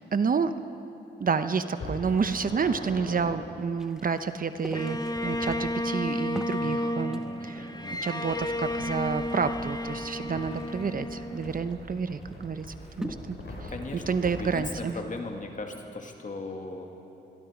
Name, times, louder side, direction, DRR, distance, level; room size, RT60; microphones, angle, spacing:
voice 1, 0.1-0.6 1.2-7.7 8.0-12.7 13.0-13.4 13.6-13.7 14.1-15.0, right 5 dB, 45° right, 10 dB, 0.8 m, -29 dB
sound 1, 1.7-3.2 5.0-5.6 8.3-14.7, left 1 dB, 65° left, 5.3 m, -42 dB
sound 2, 3.8-13.8, equal, 5° right, 1.3 m, -45 dB
Bowed string instrument, 4.7-12.0, left 1 dB, 20° left, 1.4 m, -32 dB
voice 2, 7.0-8.0 12.8-13.0 13.7-16.9, left 3 dB, 40° left, 3 dB, 2.2 m, -38 dB
25.5 x 22.0 x 5.1 m, 2.9 s
cardioid pair, 80°, 19 cm